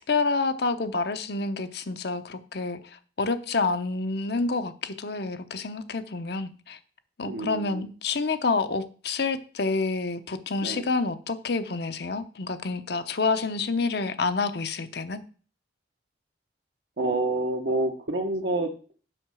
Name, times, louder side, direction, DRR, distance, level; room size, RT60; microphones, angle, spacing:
voice 1, 0.1-2.8 3.2-6.8 7.2-15.2, left 3 dB, 60° left, 0.8 m, -28 dB
voice 2, 7.2-7.9 10.6-10.9 17.0-18.7, right 2 dB, 70° right, 1.0 m, -28 dB
7.8 x 5.6 x 6.3 m
head